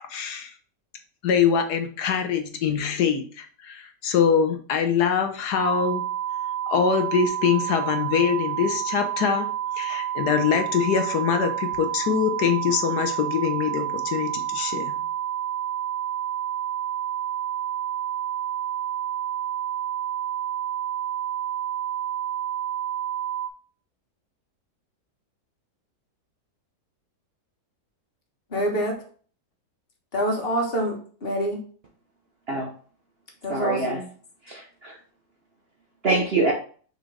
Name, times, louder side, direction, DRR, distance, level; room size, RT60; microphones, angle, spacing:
voice 1, 0.1-0.5 1.2-6.0 6.7-9.5 9.8-15.0, left 7 dB, 70° left, 6 dB, 1.3 m, -24 dB
sound 1, 5.6-23.5, right 11 dB, 70° right, 1.0 m, -29 dB
voice 2, 28.5-29.0 30.1-31.6 33.4-34.0, equal, 35° left, 2 dB, 1.5 m, -26 dB
voice 3, 33.5-34.0 34.5-35.0 36.0-36.5, right 3 dB, 45° right, 1 dB, 0.8 m, -24 dB
6.5 x 4.5 x 3.3 m, 0.43 s
omnidirectional pair, 1.8 m